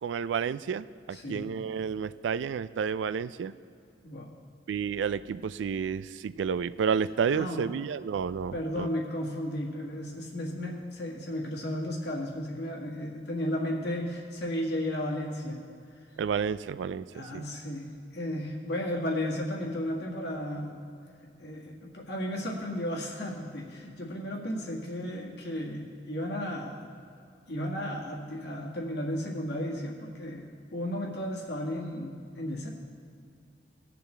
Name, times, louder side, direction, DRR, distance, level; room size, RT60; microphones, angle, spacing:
voice 1, 0.0-3.5 4.7-8.9 16.2-17.4, right 6 dB, 90° right, 16 dB, 0.3 m, -31 dB
voice 2, 1.1-1.5 4.0-4.3 7.3-7.7 8.5-15.6 17.1-17.9 18.1-20.9 21.4-26.9 27.5-32.7, left 1 dB, 65° left, -1 dB, 1.7 m, -34 dB
19.0 x 6.9 x 3.3 m, 2.5 s
head